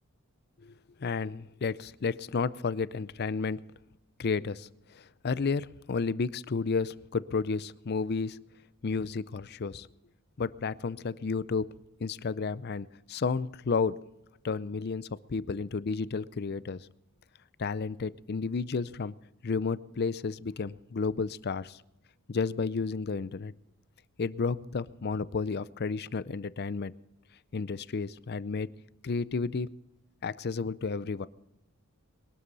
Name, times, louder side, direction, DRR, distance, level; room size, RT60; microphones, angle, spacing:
voice 1, 1.0-3.6 4.2-8.4 8.8-9.9 10.4-11.7 12.0-14.0 14.4-16.9 17.6-19.1 19.4-21.8 22.3-23.5 24.2-26.9 27.5-28.7 29.0-29.7 30.2-31.3, left 4 dB, 45° left, 18 dB, 0.5 m, -32 dB
21.5 x 12.5 x 4.1 m, 0.89 s
head